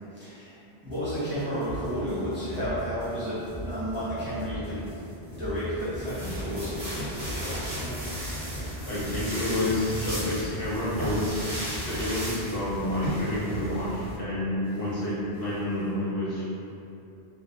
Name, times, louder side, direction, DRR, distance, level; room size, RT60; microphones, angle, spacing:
voice 1, 0.1-0.6 0.8-4.8 5.2-8.1 8.5-8.9, equal, 10° right, -15 dB, 0.7 m, -33 dB
sound 1, 0.9-15.8, left 1 dB, 30° left, 0.4 m, -40 dB
sound 2, 5.9-14.2, equal, 50° right, 0.8 m, -35 dB
voice 2, 8.9-11.5 11.9-16.4, left 1 dB, 65° left, -9 dB, 0.7 m, -29 dB
2.2 x 2.1 x 2.9 m, 2.7 s
omnidirectional pair, 1.1 m